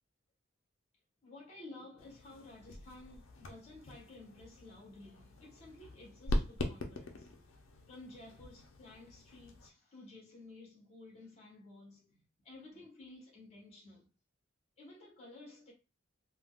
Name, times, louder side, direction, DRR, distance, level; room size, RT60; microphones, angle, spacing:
voice 1, 1.2-7.5 7.9-14.1 14.8-15.7, left 2 dB, 35° left, 1.2 m, -54 dB
sound 1, 2.0-9.7, left 1 dB, 90° left, 0.6 m, -42 dB
3.6 x 2.2 x 2.3 m
head